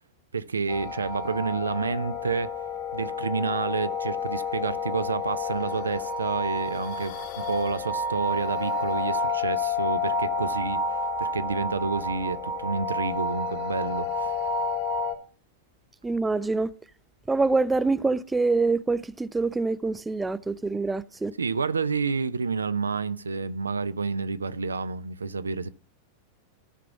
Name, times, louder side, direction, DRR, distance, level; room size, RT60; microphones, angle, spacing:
voice 1, 0.3-2.5 2.9-7.1 7.5-14.4 21.4-25.7, right 4 dB, 75° right, 0.6 m, -29 dB
sound 1, 0.7-15.2, left 3 dB, 55° left, 2.5 m, -30 dB
voice 2, 16.0-16.7 17.3-21.3, right 3 dB, 10° right, 0.5 m, -25 dB
13.5 x 6.1 x 6.9 m
figure-of-eight pair, 90°, 0 cm